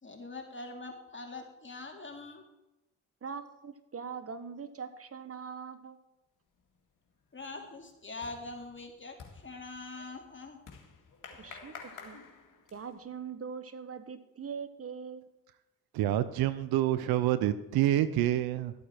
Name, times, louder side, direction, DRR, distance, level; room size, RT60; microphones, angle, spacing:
voice 1, 0.0-2.4 7.3-10.6, left 3 dB, 35° left, 2 dB, 2.4 m, -43 dB
voice 2, 3.2-6.0 11.4-11.7 12.0-12.2 12.7-15.3, right 6 dB, 40° right, 11 dB, 1.2 m, -42 dB
sound 1, 6.6-7.0 7.3-13.1, left 5 dB, 60° left, 2.2 m, -51 dB
voice 3, 15.9-18.7, right 13 dB, 85° right, 14 dB, 0.7 m, -27 dB
13.5 x 8.5 x 4.5 m, 0.96 s
supercardioid pair, 50°, 36 cm